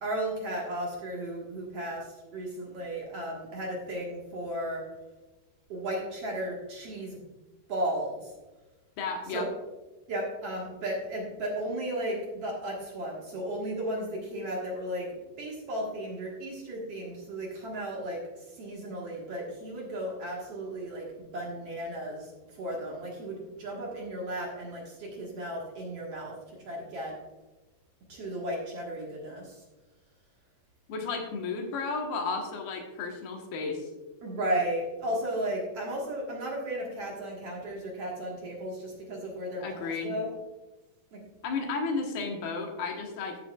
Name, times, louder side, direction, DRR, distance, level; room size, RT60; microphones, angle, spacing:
voice 1, 0.0-4.8 5.7-7.2 7.7-8.3 9.3-9.5 10.1-15.1 15.4-21.1 21.3-26.4 26.6-27.2 28.1-29.6 34.2-40.3 41.1-41.2, right 1 dB, 55° right, -3 dB, 2.1 m, -34 dB
voice 2, 9.0-9.5 30.9-33.9 39.6-40.1 41.4-43.4, left 4 dB, 90° left, 2 dB, 3.2 m, -33 dB
14.0 x 7.6 x 2.4 m, 1.1 s
omnidirectional pair, 4.2 m